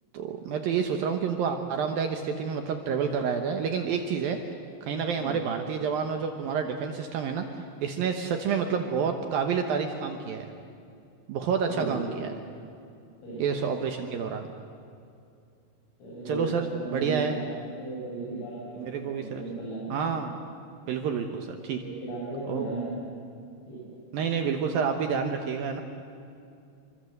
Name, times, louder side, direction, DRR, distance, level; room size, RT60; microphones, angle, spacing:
voice 1, 0.1-4.4 4.8-7.5 7.8-10.5 11.3-12.3 13.4-14.5 16.3-16.6 16.9-17.3 18.8-19.4 19.9-20.4 20.9-21.8 22.5-22.7 24.1-25.8, right 6 dB, 75° right, 5 dB, 2.1 m, -29 dB
voice 2, 5.1-5.5 11.6-12.0 13.2-13.5 16.0-17.5 17.7-19.9 21.8-23.0 23.7-23.8, right 3 dB, 85° left, -8 dB, 9.8 m, -36 dB
27.5 x 24.0 x 8.0 m, 2.5 s
omnidirectional pair, 5.9 m